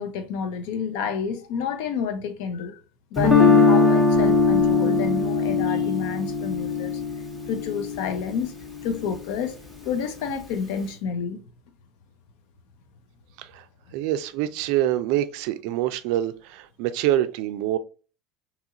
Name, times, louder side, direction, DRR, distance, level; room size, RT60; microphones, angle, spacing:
voice 1, 0.0-2.8 3.1-7.0 7.5-8.5 8.8-9.6 9.8-11.4, left 6 dB, 75° left, 0.5 m, -29 dB
Guitar, 3.2-9.2, left 4 dB, 15° left, 0.9 m, -21 dB
voice 2, 13.9-17.8, right 13 dB, 70° right, 0.3 m, -25 dB
2.9 x 2.4 x 2.7 m
cardioid pair, 135°, 0 cm